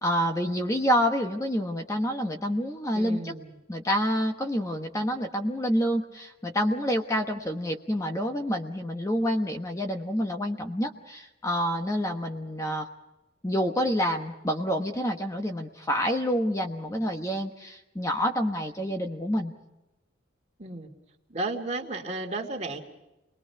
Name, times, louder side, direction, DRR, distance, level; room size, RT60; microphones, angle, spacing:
voice 1, 0.0-3.4 3.7-12.9 13.4-19.5, equal, 15° left, 4 dB, 1.2 m, -28 dB
voice 2, 2.9-3.6 20.6-20.9 21.3-22.8, right 2 dB, 35° right, 1 dB, 2.5 m, -33 dB
29.5 x 21.5 x 4.7 m, 0.98 s
head